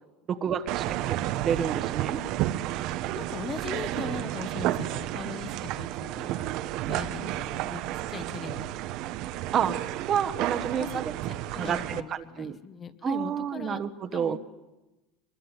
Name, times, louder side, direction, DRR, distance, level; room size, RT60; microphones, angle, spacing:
voice 1, 0.3-2.2 9.5-9.8 10.1-11.0 11.6-12.6 13.0-14.4, right 8 dB, 30° right, 10 dB, 1.2 m, -29 dB
sound 1, 0.7-12.0, right 14 dB, 50° right, 1.0 m, -31 dB
voice 2, 3.0-6.4 6.9-7.8 8.1-8.7 10.8-13.8 14.1-14.4, left 6 dB, 25° left, 12 dB, 1.2 m, -40 dB
23.0 x 22.0 x 9.9 m, 1.0 s
supercardioid pair, 150°, 0 cm